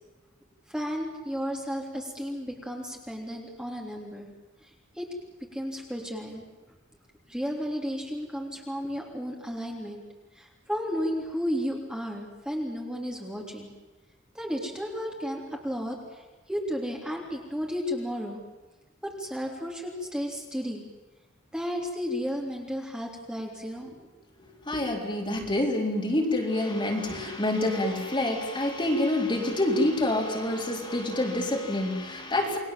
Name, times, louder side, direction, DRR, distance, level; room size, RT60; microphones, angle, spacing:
voice 1, 0.7-4.3 4.6-5.1 5.5-6.4 7.3-10.0 10.3-13.7 14.3-18.4 19.0-20.8 21.5-24.1, equal, 5° right, -1 dB, 3.5 m, -33 dB
voice 2, 24.7-32.6, left 1 dB, 25° left, 0 dB, 4.0 m, -27 dB
29.5 x 21.0 x 7.7 m, 1.1 s
head